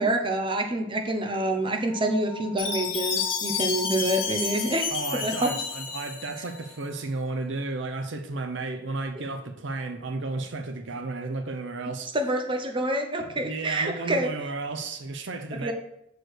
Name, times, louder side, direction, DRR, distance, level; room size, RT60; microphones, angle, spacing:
voice 1, 0.0-4.8 5.1-5.5 12.1-14.3 15.6-15.7, right 1 dB, 25° right, 0.8 m, -27 dB
sound 1, 1.9-7.0, left 3 dB, 30° left, 0.6 m, -45 dB
Chime, 2.6-6.7, left 6 dB, 80° left, 1.3 m, -30 dB
voice 2, 4.9-12.2 13.2-15.7, right 3 dB, 65° right, 0.6 m, -33 dB
6.4 x 4.6 x 6.2 m
head